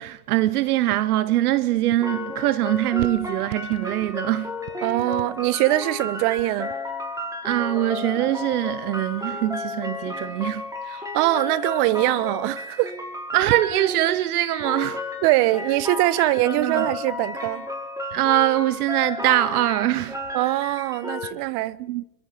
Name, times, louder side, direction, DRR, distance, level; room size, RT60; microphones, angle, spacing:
voice 1, 0.0-4.6 7.4-10.6 13.3-15.0 16.4-16.9 18.1-20.2 21.8-22.0, right 14 dB, 80° right, 1.1 m, -23 dB
sound 1, 2.0-21.3, left 2 dB, 10° right, 6.1 m, -33 dB
voice 2, 4.8-6.7 10.9-12.9 15.2-17.7 20.3-21.8, right 18 dB, 60° right, 1.4 m, -22 dB
30.0 x 22.5 x 5.2 m
hypercardioid pair, 95°, 45 cm